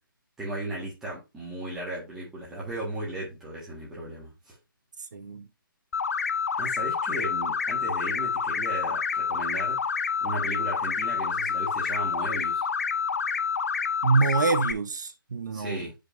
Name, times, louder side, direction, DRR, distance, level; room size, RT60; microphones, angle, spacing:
voice 1, 0.4-4.6 6.5-9.9 10.2-12.6 15.5-15.9, right 1 dB, 5° right, 1.7 m, -36 dB
voice 2, 5.1-5.5 14.0-15.9, right 4 dB, 55° right, 1.0 m, -25 dB
sound 1, 5.9-14.7, left 6 dB, 45° left, 0.4 m, -28 dB
8.1 x 5.3 x 2.7 m
hypercardioid pair, 175°, 12 cm